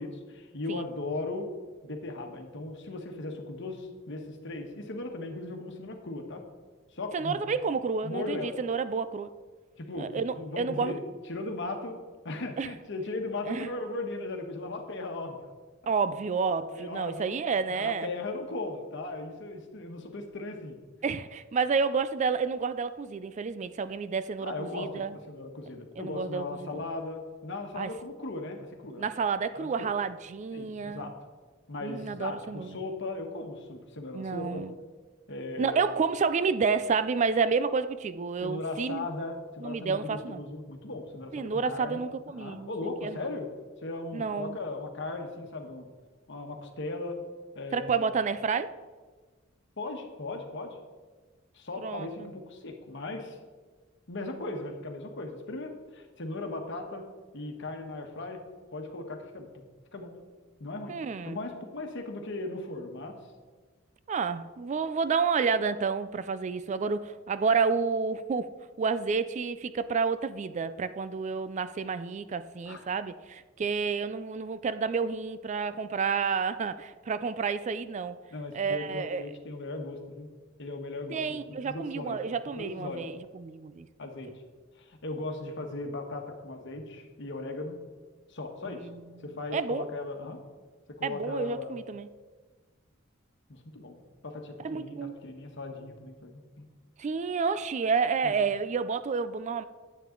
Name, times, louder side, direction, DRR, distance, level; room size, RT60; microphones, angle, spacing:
voice 1, 0.0-1.5 1.8-6.4 6.9-7.4 8.0-8.6 9.8-11.0 11.3-12.0 12.2-15.4 16.7-17.3 17.7-20.8 24.4-29.1 29.5-29.9 30.5-31.1 31.7-34.6 35.3-35.9 38.4-42.0 42.3-43.5 43.8-45.9 46.3-47.2 47.5-48.2 49.8-50.8 51.5-53.4 54.1-57.1 57.3-58.4 58.7-59.6 59.9-60.1 60.6-60.9 61.2-63.2 72.6-72.8 78.3-80.3 80.6-82.2 82.5-83.1 84.0-84.4 84.8-87.8 88.3-88.9 89.2-90.4 91.0-91.8 93.5-94.0 94.2-96.7 98.2-98.4, left 2 dB, 65° left, 4 dB, 1.3 m, -37 dB
voice 2, 7.1-9.3 10.0-10.9 12.6-12.7 13.5-13.7 15.9-18.1 21.0-25.2 26.0-26.8 27.8-27.9 29.0-31.1 31.8-32.8 34.1-34.7 35.6-39.1 39.6-40.4 41.3-42.7 43.0-43.2 44.1-44.6 47.7-48.7 51.8-52.3 60.9-61.4 64.1-68.5 68.8-78.2 78.5-79.2 81.1-83.9 88.6-89.0 89.5-89.9 91.0-92.1 94.6-95.2 97.0-99.6, right 5 dB, 35° right, 13 dB, 0.3 m, -30 dB
10.0 x 8.5 x 3.8 m, 1.4 s
head